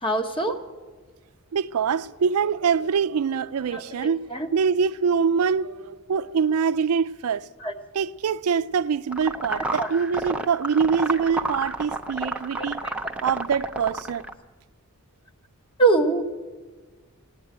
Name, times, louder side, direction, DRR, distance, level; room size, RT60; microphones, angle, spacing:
voice 1, 0.0-0.6 3.7-4.5 7.6-7.7 9.8-9.9 12.6-12.9 15.8-16.2, right 3 dB, 25° left, 1.2 m, -24 dB
voice 2, 1.5-4.3 4.5-7.5 7.9-12.8 13.2-14.2, right 6 dB, 80° right, 0.4 m, -24 dB
sound 1, 9.1-14.3, right 2 dB, 5° right, 0.7 m, -30 dB
16.5 x 9.6 x 9.0 m
head